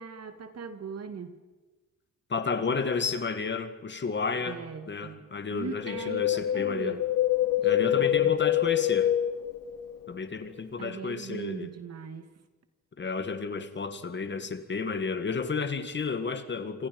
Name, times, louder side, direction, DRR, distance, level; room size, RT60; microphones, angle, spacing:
voice 1, 0.0-1.4 4.5-7.0 7.6-8.4 10.8-12.3, right 6 dB, 50° right, 8 dB, 2.3 m, -40 dB
voice 2, 2.3-4.6 4.9-7.0 7.6-9.1 10.1-11.7 13.0-16.9, left 5 dB, 35° left, 9 dB, 2.0 m, -32 dB
Wind, 5.8-10.2 10.4-10.5, left 12 dB, 90° left, 1.7 m, -26 dB
27.5 x 26.5 x 5.5 m, 1.2 s
cardioid pair, 105°, 32 cm